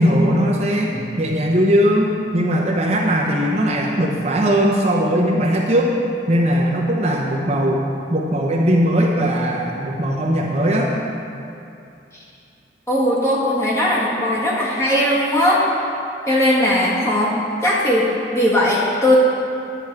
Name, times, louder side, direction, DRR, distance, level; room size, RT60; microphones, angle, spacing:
voice 1, 0.0-5.9 6.3-10.9, equal, 35° right, -1 dB, 0.8 m, -19 dB
voice 2, 12.9-15.6 16.3-17.4 17.6-19.2, left 1 dB, 15° left, -6 dB, 1.7 m, -18 dB
10.5 x 8.0 x 4.7 m, 2.7 s
head